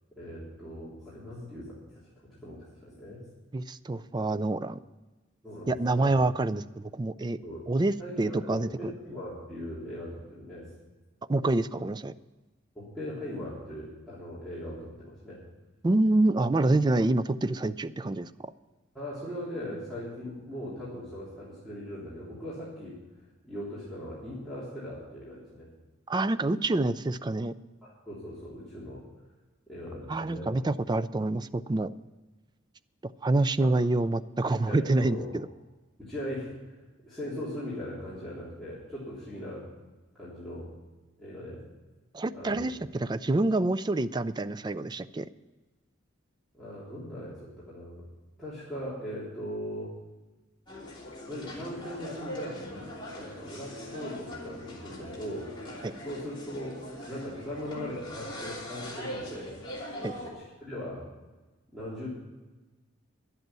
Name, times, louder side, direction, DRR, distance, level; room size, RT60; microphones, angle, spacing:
voice 1, 0.2-2.0 2.3-3.2 5.4-6.2 7.4-7.7 8.0-10.7 12.7-15.4 18.9-23.0 23.4-25.7 27.8-29.0 29.7-30.5 33.6-33.7 34.7-35.4 36.0-36.8 37.0-39.7 40.2-40.7 41.2-41.6 42.3-42.7 46.5-48.0 48.4-50.0 51.3-55.5 56.0-59.6 60.1-61.1 61.7-62.1, equal, ahead, -11 dB, 3.3 m, -39 dB
voice 2, 3.5-4.8 5.7-7.4 7.7-8.9 11.3-12.1 15.8-18.3 26.1-27.5 30.1-31.9 33.2-35.5 42.1-45.3 55.8-55.9 60.0-60.1, right 2 dB, 20° right, 14 dB, 0.3 m, -27 dB
sound 1, 50.7-60.3, equal, 25° left, 3.0 m, -41 dB
11.0 x 8.1 x 9.0 m, 1.2 s
head